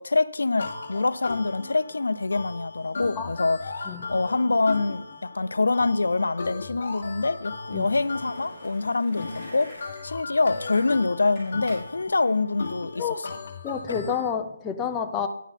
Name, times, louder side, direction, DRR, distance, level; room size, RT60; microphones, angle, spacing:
voice 1, 0.0-9.8 10.0-13.3, left 3 dB, 90° left, 0.4 m, -25 dB
sound 1, 0.6-14.3, left 3 dB, 40° left, 1.1 m, -37 dB
Skateboard, 7.8-13.2, equal, 10° right, 4.5 m, -47 dB
voice 2, 13.6-15.3, left 7 dB, 10° left, 0.3 m, -29 dB
10.0 x 8.1 x 4.2 m
hypercardioid pair, 180°, 0 cm